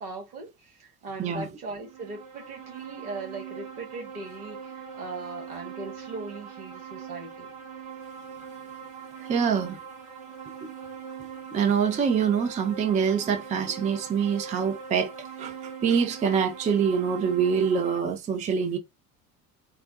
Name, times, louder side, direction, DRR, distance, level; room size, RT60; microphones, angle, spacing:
voice 1, 0.0-7.5, right 3 dB, 70° right, 1.5 m, -39 dB
sound 1, 1.7-18.0, right 7 dB, 40° right, 1.4 m, -42 dB
voice 2, 9.2-9.8 10.6-10.7 11.5-15.1 15.4-18.8, right 7 dB, 15° right, 0.5 m, -25 dB
3.6 x 2.2 x 2.6 m
figure-of-eight pair, 65°, 46 cm